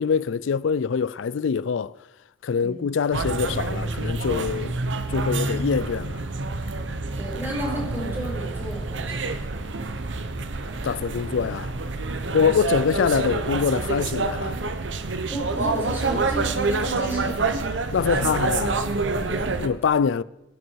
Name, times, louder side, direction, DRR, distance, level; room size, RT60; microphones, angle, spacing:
voice 1, 0.0-1.9 2.4-6.2 10.8-11.7 12.3-14.6 17.9-18.8 19.6-20.2, left 6 dB, 85° left, 0.4 m, -24 dB
sound 1, 3.1-19.7, right 3 dB, 75° right, 1.0 m, -27 dB
voice 2, 7.2-9.4 12.2-12.4 15.3-18.3 18.7-19.5, equal, 10° right, 4.9 m, -34 dB
23.5 x 9.4 x 4.6 m
head